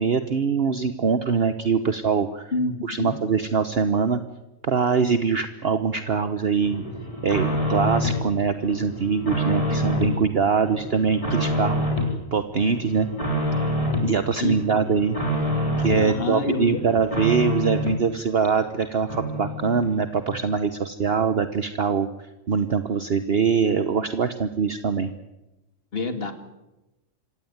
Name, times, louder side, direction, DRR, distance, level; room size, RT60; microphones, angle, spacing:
voice 1, 0.0-2.5 2.8-4.2 4.6-6.8 7.2-11.8 12.3-13.1 14.0-15.1 15.8-22.1 22.5-25.1, right 6 dB, 50° right, 10 dB, 1.2 m, -23 dB
voice 2, 2.5-3.1 9.7-9.8 14.4-14.5 16.0-16.8 25.9-26.3, left 3 dB, 45° left, 8 dB, 2.4 m, -27 dB
sound 1, 6.6-8.2 8.6-10.2 10.6-12.2 12.5-14.1 14.5-16.1 16.5-18.0 18.4-18.5 18.8-18.9 19.1-20.0 20.3-20.4, left 1 dB, 25° left, 4.5 m, -27 dB
26.0 x 16.5 x 9.5 m, 0.99 s
omnidirectional pair, 1.4 m